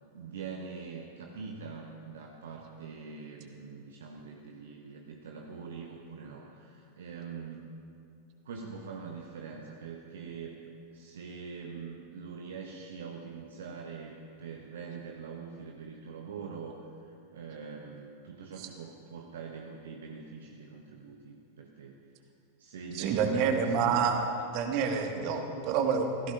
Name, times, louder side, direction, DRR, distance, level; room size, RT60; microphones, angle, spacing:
voice 1, 0.1-7.7 8.4-10.6 10.9-22.0 22.6-24.0, right 5 dB, 60° right, 2 dB, 1.1 m, -43 dB
voice 2, 22.9-24.2 24.5-26.3, right 6 dB, 45° right, 4 dB, 1.9 m, -28 dB
27.0 x 16.5 x 2.6 m, 2.6 s
figure-of-eight pair, 90°, 0 cm